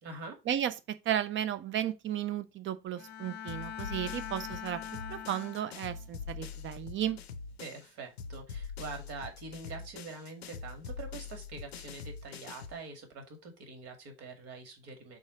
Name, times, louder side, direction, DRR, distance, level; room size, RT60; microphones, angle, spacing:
voice 1, 0.0-0.4 7.6-15.2, right 3 dB, 55° right, 2.1 m, -45 dB
voice 2, 1.0-4.8 5.1-7.2, right 10 dB, 40° right, 0.8 m, -34 dB
Bowed string instrument, 3.0-6.2, left 9 dB, 35° left, 0.9 m, -43 dB
sound 1, 3.5-7.9 8.2-12.8, left 6 dB, 85° left, 0.5 m, -44 dB
5.0 x 4.2 x 4.9 m
hypercardioid pair, 65°, 30 cm